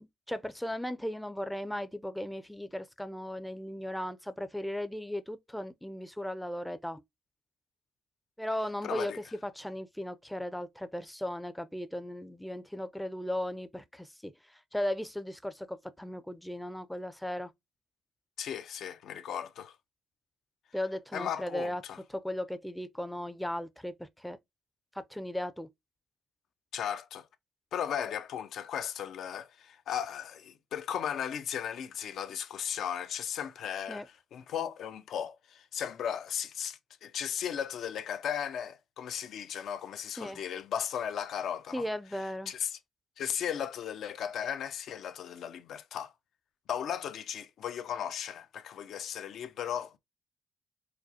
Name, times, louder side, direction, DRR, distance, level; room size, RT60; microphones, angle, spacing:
voice 1, 0.0-7.0 8.4-17.5 20.7-21.8 22.1-24.4 24.9-25.7 33.9-34.1 40.2-40.4 41.7-42.5, left 1 dB, 5° left, 0.4 m, -37 dB
voice 2, 8.8-9.2 18.4-19.8 21.1-22.0 26.7-27.3 27.7-41.9 42.5-42.8 43.2-46.1 46.7-50.0, left 9 dB, 70° left, 0.5 m, -36 dB
4.8 x 2.0 x 2.7 m
cardioid pair, 90°, 0 cm